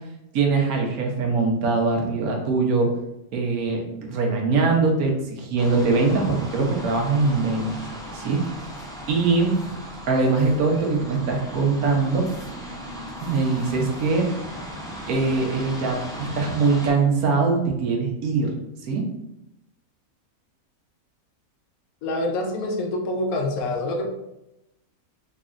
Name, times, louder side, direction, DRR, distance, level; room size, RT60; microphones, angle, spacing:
voice 1, 0.3-2.9 3.3-7.7 8.1-8.4 9.1-9.5 10.1-12.3 13.2-14.3 15.1-18.5 18.8-19.0, right 4 dB, 85° right, 1 dB, 1.3 m, -22 dB
sound 1, 5.6-16.9, equal, 5° left, 0.3 m, -37 dB
voice 2, 22.0-24.1, left 1 dB, 85° left, 3 dB, 1.1 m, -26 dB
3.8 x 3.2 x 2.5 m, 0.89 s
omnidirectional pair, 1.5 m